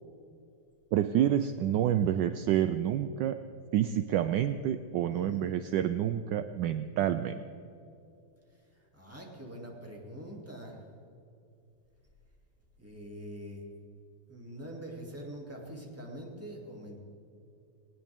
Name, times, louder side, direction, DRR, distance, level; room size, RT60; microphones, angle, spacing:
voice 1, 0.9-3.4 3.7-7.4, right 10 dB, 75° right, 10 dB, 1.0 m, -28 dB
voice 2, 5.1-5.4 8.7-10.8 12.8-13.7 14.3-17.0, equal, 5° right, -2 dB, 2.5 m, -44 dB
19.0 x 19.0 x 3.6 m, 2.7 s
omnidirectional pair, 2.4 m